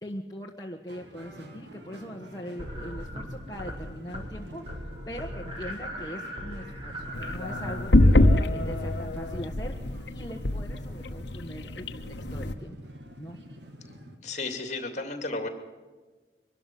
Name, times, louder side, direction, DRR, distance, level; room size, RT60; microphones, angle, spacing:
voice 1, 0.0-8.4 8.6-12.0 12.3-12.8 13.2-13.4, equal, 20° left, -1 dB, 1.4 m, -41 dB
sound 1, 0.9-14.2, equal, 70° right, 2.6 m, -47 dB
sound 2, 2.6-3.8 4.1-4.4 4.7-9.4, equal, 30° right, 4.0 m, -39 dB
sound 3, 7.1-12.5, left 1 dB, 65° left, 1.1 m, -24 dB
voice 2, 14.2-15.5, left 3 dB, 40° left, 7 dB, 2.6 m, -33 dB
23.5 x 13.0 x 9.3 m, 1.3 s
head